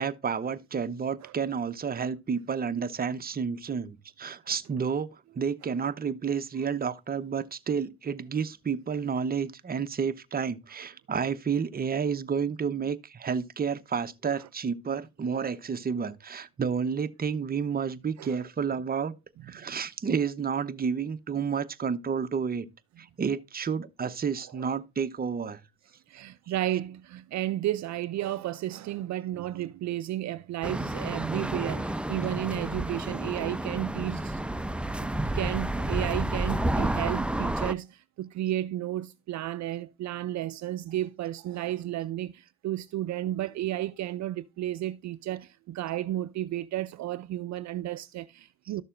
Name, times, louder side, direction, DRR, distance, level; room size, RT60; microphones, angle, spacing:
voice 1, 0.0-19.1 19.5-22.7 23.0-25.6 31.7-31.9, right 6 dB, 30° right, 0.8 m, -30 dB
voice 2, 26.1-34.4 35.3-48.8, right 13 dB, 65° right, 0.5 m, -33 dB
sound 1, 30.6-37.7, right 1 dB, 5° right, 0.6 m, -30 dB
12.5 x 6.6 x 2.5 m
cardioid pair, 90°, 30 cm